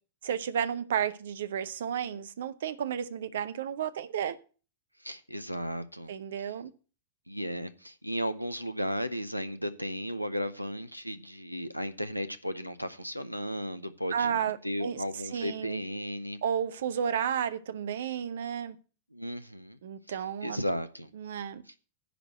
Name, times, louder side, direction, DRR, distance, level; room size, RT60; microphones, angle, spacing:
voice 1, 0.2-4.4 6.1-6.7 14.1-15.0 15.3-15.8 16.4-18.8 19.8-20.6 21.2-21.6, right 8 dB, 60° right, 0.7 m, -32 dB
voice 2, 5.0-6.1 6.4-6.5 7.3-16.4 19.1-19.8 20.1-21.1 21.7-21.8, equal, 90° right, 0.6 m, -35 dB
10.0 x 4.8 x 7.6 m
figure-of-eight pair, 90°, 0 cm